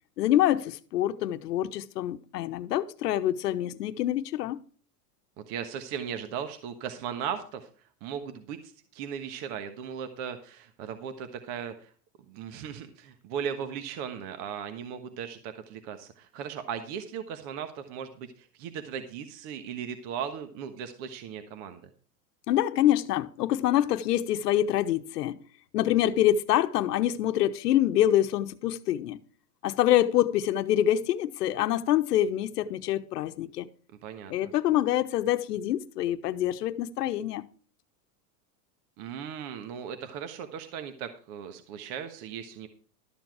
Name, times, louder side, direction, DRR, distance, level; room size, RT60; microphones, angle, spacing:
voice 1, 0.2-4.6 22.5-25.4 25.7-29.2 29.6-33.7 34.3-37.4, left 12 dB, 85° left, 1.0 m, -26 dB
voice 2, 5.5-7.7 8.0-11.9 12.3-21.8 34.0-34.5 39.0-42.7, right 8 dB, 45° right, 1.3 m, -37 dB
12.5 x 7.2 x 4.8 m
supercardioid pair, 140°, 47 cm